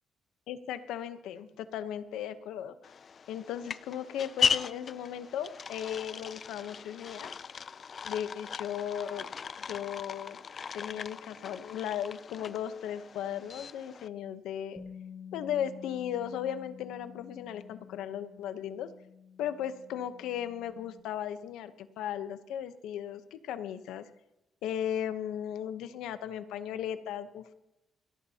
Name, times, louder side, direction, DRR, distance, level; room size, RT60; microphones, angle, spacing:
voice 1, 0.5-2.9 3.3-7.3 8.0-9.3 9.7-10.4 10.7-14.8 15.3-18.9 19.4-24.1 24.6-27.5, left 9 dB, 90° left, 12 dB, 0.8 m, -36 dB
sound 1, 2.8-14.1, left 6 dB, 45° left, 0.4 m, -37 dB
Bass guitar, 14.8-21.0, left 7 dB, 10° left, 2.1 m, -50 dB
30.0 x 11.0 x 2.9 m, 0.93 s
cardioid pair, 90°, 0 cm